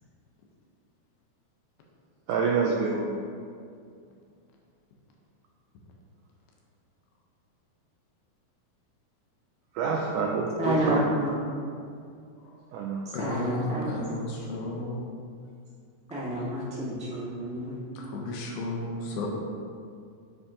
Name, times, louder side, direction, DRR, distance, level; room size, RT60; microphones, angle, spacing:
voice 1, 2.3-3.2 9.8-11.0 12.7-13.0, right 4 dB, 85° right, -1 dB, 1.8 m, -27 dB
voice 2, 10.6-11.3 13.0-13.9 16.1-17.8, right 1 dB, 10° right, -9 dB, 0.4 m, -29 dB
voice 3, 13.1-15.1 18.0-19.3, left 2 dB, 90° left, -1 dB, 2.8 m, -33 dB
10.0 x 7.2 x 2.8 m, 2.3 s
omnidirectional pair, 4.2 m